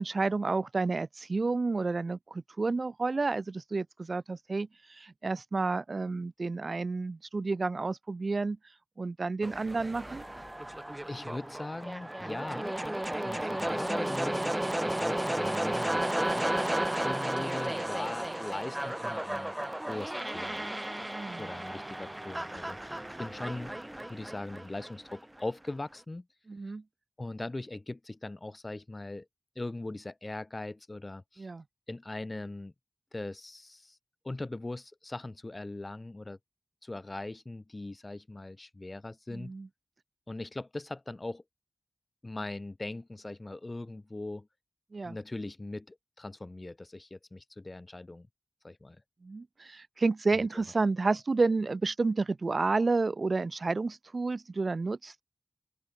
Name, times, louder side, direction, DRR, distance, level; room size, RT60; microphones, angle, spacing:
voice 1, 0.0-8.6 9.0-10.2 21.1-21.5 26.5-26.8 31.4-31.6 39.3-39.7 44.9-45.2 49.2-55.2, right 3 dB, 65° right, 1.5 m, -30 dB
sound 1, 9.4-25.4, right 1 dB, 20° right, 1.4 m, -34 dB
voice 2, 11.1-12.7 13.2-16.4 16.9-19.5 19.9-21.0 21.4-23.7 24.1-26.2 27.2-29.3 29.5-31.5 31.9-32.7 33.1-34.0 34.2-36.4 36.8-39.5 40.3-41.4 42.2-44.5 45.0-48.3 48.6-49.0 50.3-50.5, left 2 dB, 40° left, 3.2 m, -40 dB
open air
cardioid pair, 45°, 0 cm